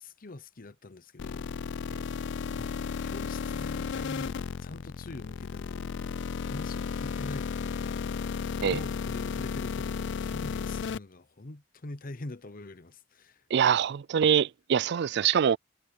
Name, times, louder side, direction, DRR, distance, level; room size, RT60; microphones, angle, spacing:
voice 1, 0.0-1.5 2.5-13.7, left 2 dB, 50° left, 1.0 m, -44 dB
sound 1, 1.2-11.0, left 6 dB, 65° left, 0.4 m, -34 dB
voice 2, 13.5-15.6, right 8 dB, 60° right, 0.4 m, -24 dB
head